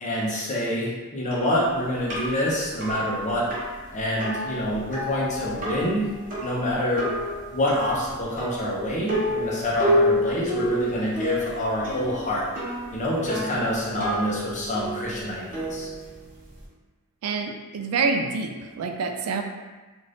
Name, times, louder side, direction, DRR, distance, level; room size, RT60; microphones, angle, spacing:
voice 1, 0.0-3.5 3.9-6.1 6.4-7.1 7.5-12.5 12.9-15.9, left 1 dB, 35° left, -5 dB, 0.7 m, -26 dB
sound 1, 1.3-16.7, equal, 40° right, 0.8 m, -30 dB
voice 2, 17.2-19.4, right 4 dB, 80° right, 4 dB, 0.3 m, -27 dB
2.6 x 2.5 x 3.3 m, 1.3 s
head